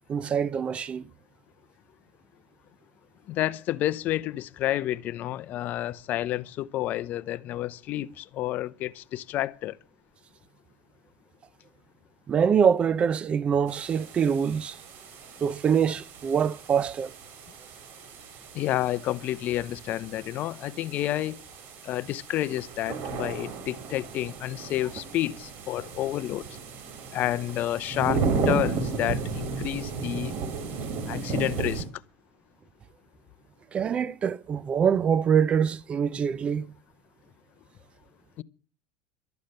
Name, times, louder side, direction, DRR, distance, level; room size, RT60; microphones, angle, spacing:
voice 1, 0.1-1.1 12.3-14.8 15.4-17.1 33.7-36.7, right 7 dB, 25° right, 0.6 m, -24 dB
voice 2, 3.3-9.8 18.5-21.4 21.8-26.4 27.1-30.3 31.1-31.8 38.4-38.5, left 14 dB, 45° left, 0.7 m, -30 dB
sound 1, 13.7-31.8, right 4 dB, 50° right, 3.8 m, -34 dB
13.0 x 9.4 x 6.7 m
supercardioid pair, 135°, 4 cm